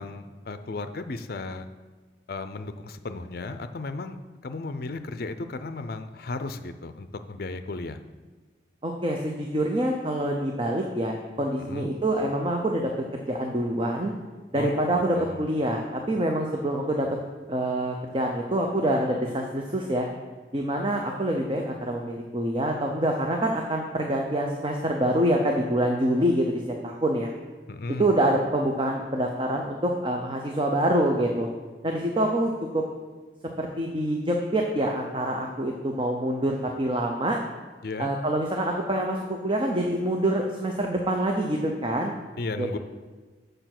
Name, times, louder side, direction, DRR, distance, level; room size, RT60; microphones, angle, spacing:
voice 1, 0.0-1.7 2.3-8.0 11.6-11.9 14.6-15.4 27.7-28.1 37.8-38.1 42.4-42.8, left 3 dB, 55° left, 10 dB, 0.5 m, -35 dB
voice 2, 8.8-14.1 14.5-17.1 17.5-20.1 20.5-27.3 28.0-31.5 31.8-32.8 33.6-37.4 38.0-39.2 39.4-42.1 42.6-42.8, right 1 dB, 30° right, 1 dB, 0.6 m, -26 dB
6.8 x 6.5 x 6.0 m, 1.3 s
head